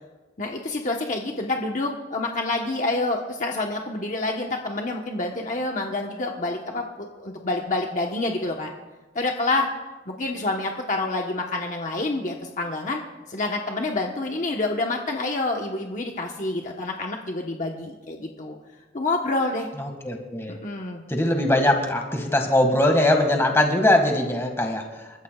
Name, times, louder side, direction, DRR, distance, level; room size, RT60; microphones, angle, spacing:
voice 1, 0.4-8.7 9.1-9.7 10.1-13.0 13.3-18.6 18.9-19.7 20.5-21.0, left 2 dB, 40° left, 1 dB, 1.1 m, -27 dB
voice 2, 19.8-20.6 21.1-24.8, left 1 dB, 15° left, 3 dB, 1.8 m, -21 dB
28.5 x 14.0 x 2.3 m, 1.2 s
head